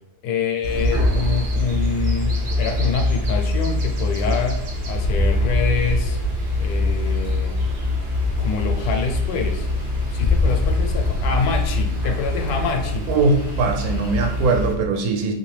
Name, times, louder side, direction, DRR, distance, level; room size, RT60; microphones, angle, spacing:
voice 1, 0.2-6.2 6.5-7.7 8.4-9.7 10.1-13.1, left 4 dB, 80° left, 4 dB, 1.1 m, -26 dB
sound 1, 0.6-14.7, left 2 dB, 60° right, 0.5 m, -24 dB
sound 2, 2.0-14.6, left 2 dB, 65° left, 0.7 m, -27 dB
voice 2, 13.1-15.3, right 3 dB, 80° right, 3 dB, 1.1 m, -20 dB
3.2 x 2.8 x 3.1 m, 0.80 s
omnidirectional pair, 1.6 m